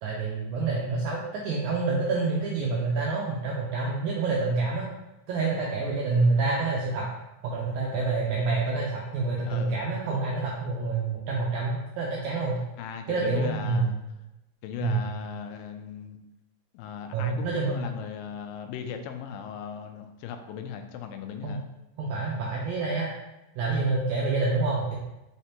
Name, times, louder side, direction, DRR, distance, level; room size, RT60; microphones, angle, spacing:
voice 1, 0.0-4.9 5.3-7.1 7.4-12.6 13.1-14.0 14.8-15.0 17.1-17.9 21.4-21.6 22.0-23.1 23.6-25.0, right 3 dB, 85° right, -3 dB, 1.7 m, -27 dB
voice 2, 9.5-9.8 12.8-13.9 14.6-16.2 16.7-21.6, left 8 dB, 85° left, 6 dB, 2.2 m, -38 dB
5.8 x 3.3 x 2.8 m, 0.96 s
omnidirectional pair, 4.0 m